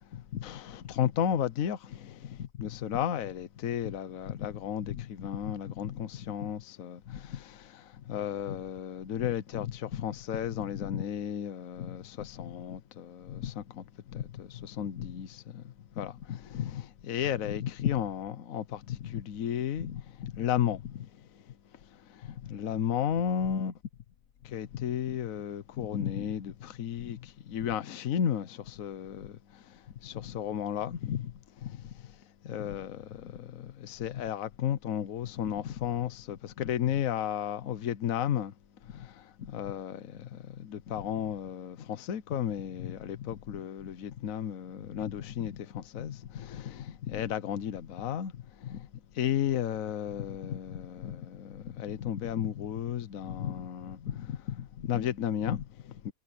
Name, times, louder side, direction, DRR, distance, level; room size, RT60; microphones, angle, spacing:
voice 1, 0.1-21.4 21.8-23.7 24.4-38.5 38.8-48.9 49.1-56.1, left 9 dB, 65° left, 1.3 m, -34 dB
omnidirectional pair, 1.6 m